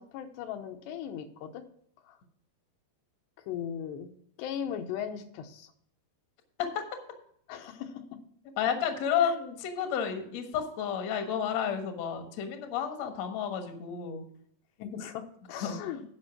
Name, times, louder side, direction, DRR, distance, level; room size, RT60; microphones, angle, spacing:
voice 1, 0.0-1.6 2.1-2.2 3.5-4.1 4.4-5.7 7.5-8.0 14.8-16.0, left 9 dB, 85° left, 6 dB, 3.0 m, -38 dB
voice 2, 8.6-14.2 15.6-15.8, left 8 dB, 65° left, 6 dB, 1.6 m, -31 dB
10.5 x 5.5 x 5.9 m, 0.64 s
omnidirectional pair, 4.9 m